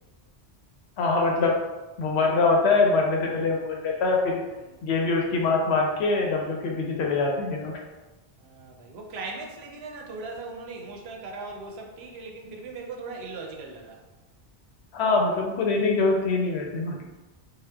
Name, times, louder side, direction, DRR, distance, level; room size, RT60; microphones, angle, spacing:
voice 1, 1.0-1.5 2.0-4.4 4.8-7.7 14.9-17.1, left 3 dB, 75° left, 0 dB, 0.8 m, -23 dB
voice 2, 8.4-14.0, right 3 dB, 75° right, 1 dB, 0.8 m, -39 dB
2.7 x 2.1 x 3.3 m, 1.1 s
omnidirectional pair, 1.1 m